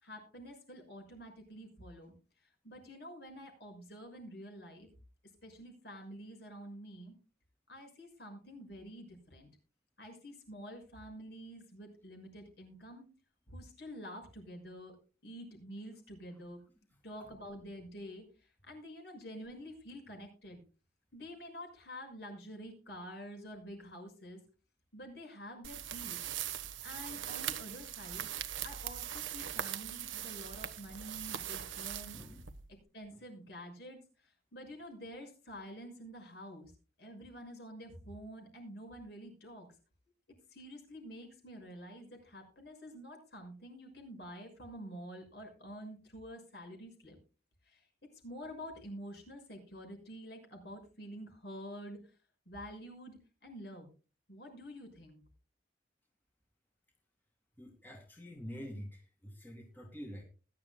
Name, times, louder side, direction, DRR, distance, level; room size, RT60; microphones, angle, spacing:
voice 1, 0.0-2.1 2.6-4.9 5.4-7.1 7.7-9.5 10.0-13.1 13.5-15.0 15.2-16.6 17.0-20.6 21.1-24.4 24.9-26.2 26.8-28.3 28.6-32.2 32.7-34.0 34.2-36.7 37.0-39.7 40.5-47.2 47.6-47.9 48.2-52.0 52.5-53.9 54.3-55.2, equal, 60° left, 3 dB, 6.2 m, -48 dB
sound 1, 25.6-32.8, right 10 dB, 90° right, 1.2 m, -41 dB
voice 2, 57.6-60.2, equal, 10° left, 1 dB, 2.2 m, -47 dB
20.5 x 11.5 x 2.2 m, 0.34 s
head